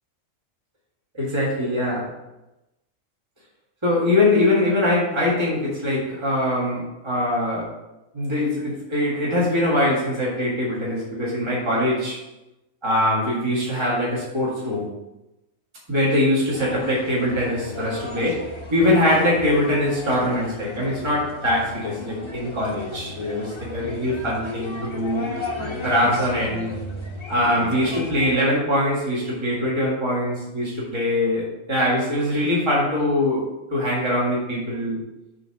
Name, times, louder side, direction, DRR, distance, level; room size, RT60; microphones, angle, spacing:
voice 1, 1.2-2.1 3.8-7.7 8.1-12.2 12.8-14.9 15.9-25.3 25.8-26.8 27.3-35.0, left 1 dB, 20° right, -6 dB, 1.9 m, -22 dB
sound 1, 16.5-28.4, left 2 dB, 25° left, 0.9 m, -35 dB
7.5 x 3.7 x 5.9 m, 0.95 s
omnidirectional pair, 1.4 m